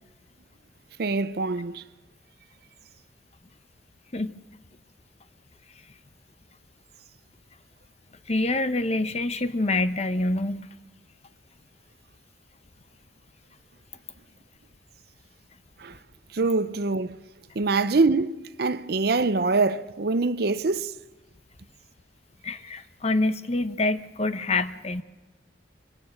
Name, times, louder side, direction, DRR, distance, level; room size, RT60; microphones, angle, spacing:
voice 1, 1.0-1.8 15.8-16.0 16.3-17.2 17.6-20.9, right 3 dB, 55° right, 0.6 m, -24 dB
voice 2, 8.3-10.7 22.4-25.0, left 2 dB, 35° left, 0.8 m, -26 dB
24.5 x 18.5 x 6.4 m
head